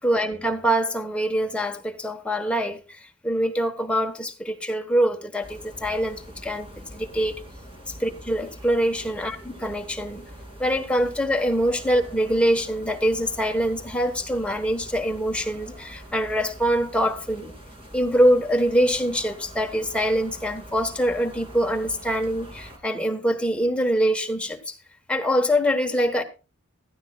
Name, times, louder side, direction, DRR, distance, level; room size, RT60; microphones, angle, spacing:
voice 1, 0.0-7.4 8.0-10.3 10.6-17.5 17.9-24.8 25.1-26.2, equal, 5° left, 1.1 m, -24 dB
sound 1, 5.4-22.8, equal, 25° right, 2.7 m, -44 dB
14.5 x 13.5 x 2.3 m
head